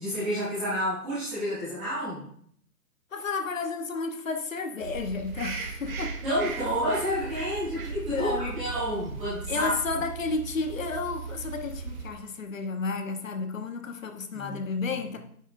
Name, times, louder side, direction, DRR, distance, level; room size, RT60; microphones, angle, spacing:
voice 1, 0.0-2.2 6.2-9.7 14.3-14.6, equal, 5° right, -13 dB, 0.8 m, -29 dB
voice 2, 3.1-6.2 8.1-8.5 9.5-15.2, left 4 dB, 55° left, 6 dB, 1.0 m, -32 dB
sound 1, 4.8-12.1, right 5 dB, 60° right, 2.0 m, -37 dB
9.3 x 6.6 x 2.5 m, 0.63 s
hypercardioid pair, 165°, 47 cm